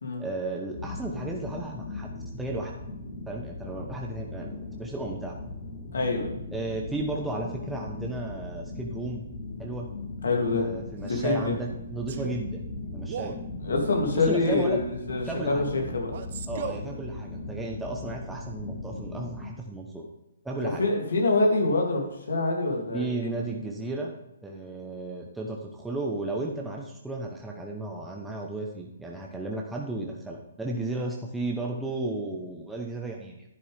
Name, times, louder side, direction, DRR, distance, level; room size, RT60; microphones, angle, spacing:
voice 1, 0.2-2.8 3.3-5.3 6.5-9.2 9.6-9.9 10.5-12.6 12.9-13.3 14.1-14.8 15.2-15.6 16.5-20.0 20.4-20.8 22.9-24.1 24.4-33.4, right 2 dB, 5° right, -1 dB, 1.1 m, -34 dB
sound 1, 0.7-19.5, left 2 dB, 40° left, 2.1 m, -38 dB
voice 2, 5.9-6.3 10.2-10.7 11.0-11.5 13.6-16.1 20.8-23.3, left 3 dB, 80° left, 1 dB, 3.0 m, -26 dB
Male speech man speaking, 11.0-11.4 12.1-12.4 13.0-13.4 14.5-14.8 16.1-16.9, right 7 dB, 55° right, 0.9 m, -38 dB
10.5 x 9.1 x 3.6 m, 0.88 s
hypercardioid pair, 140°, 0 cm